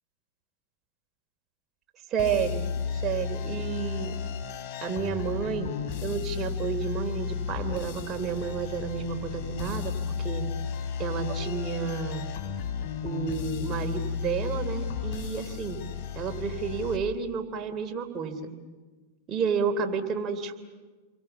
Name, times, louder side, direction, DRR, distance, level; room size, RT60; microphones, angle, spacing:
voice 1, 2.1-4.2 4.8-10.5 11.0-12.3 13.0-15.8 16.1-18.5 19.3-20.6, right 6 dB, 35° right, 4 dB, 3.4 m, -31 dB
sound 1, 2.2-17.0, left 7 dB, 55° left, 3.1 m, -33 dB
30.0 x 23.0 x 7.1 m, 1.3 s
hypercardioid pair, 105°, 0 cm